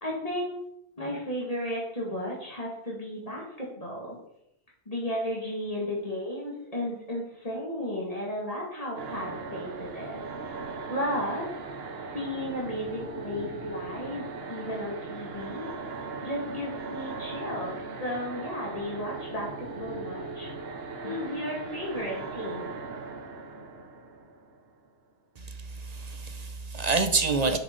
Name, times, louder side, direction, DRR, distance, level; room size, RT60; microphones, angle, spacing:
voice 1, 0.0-0.5 1.0-4.2 4.9-10.2 10.9-11.4 12.1-15.6 16.2-20.5 21.0-22.7, left 1 dB, 35° left, -4 dB, 2.1 m, -34 dB
sound 1, 9.0-24.9, right 4 dB, 70° right, 1.2 m, -39 dB
voice 2, 25.4-27.6, right 4 dB, 45° right, 8 dB, 0.8 m, -28 dB
6.9 x 6.0 x 5.2 m, 0.78 s
omnidirectional pair, 1.1 m